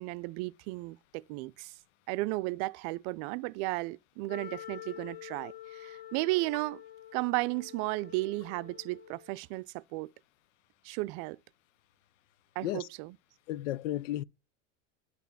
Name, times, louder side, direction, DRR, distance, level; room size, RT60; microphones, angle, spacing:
voice 1, 0.0-1.7 2.1-6.8 7.1-10.1 10.8-11.4 12.6-13.2, right 22 dB, 55° right, 0.5 m, -34 dB
Wind instrument woodwind instrument, 4.3-9.4, left 13 dB, 25° left, 0.8 m, -47 dB
voice 2, 13.5-14.2, left 14 dB, 80° left, 0.6 m, -33 dB
9.3 x 4.1 x 5.8 m
supercardioid pair, 110°, 37 cm